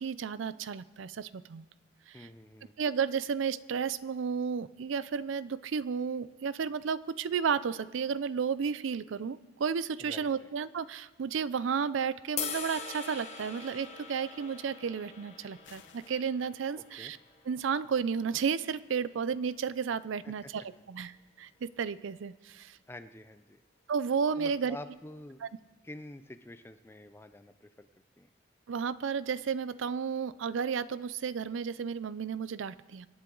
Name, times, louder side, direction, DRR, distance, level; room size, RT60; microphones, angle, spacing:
voice 1, 0.0-1.6 2.1-2.3 2.8-17.2 17.5-21.1 21.4-22.8 23.9-24.8 25.4-25.5 28.7-33.1, right 6 dB, 75° right, 17 dB, 0.4 m, -32 dB
voice 2, 2.1-2.7 10.0-10.5 16.8-17.1 20.2-20.5 22.9-23.6 24.4-25.4 25.8-27.9 28.2-28.3, left 1 dB, 10° left, 11 dB, 0.4 m, -48 dB
sound 1, 12.4-18.6, left 6 dB, 35° left, 1.1 m, -43 dB
sound 2, 15.6-16.2, left 7 dB, 65° left, 0.9 m, -56 dB
25.5 x 8.9 x 3.9 m, 1.2 s
head